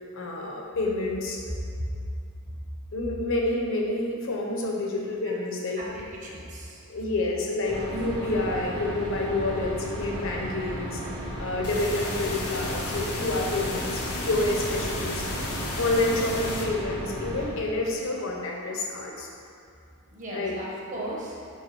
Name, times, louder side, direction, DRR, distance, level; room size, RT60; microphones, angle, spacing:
voice 1, 0.1-1.4 2.9-5.8 6.9-11.0 11.4-15.2 15.8-19.3 20.3-20.5, left 2 dB, 65° left, -1 dB, 0.9 m, -28 dB
voice 2, 1.5-1.9 4.6-4.7 5.2-5.3 5.8-6.9 20.1-21.4, right 1 dB, 35° right, -4 dB, 1.1 m, -36 dB
sound 1, 7.6-17.5, equal, 65° right, 1.4 m, -35 dB
sound 2, 11.6-16.6, left 2 dB, 85° left, 1.0 m, -34 dB
5.5 x 3.9 x 5.2 m, 2.4 s
head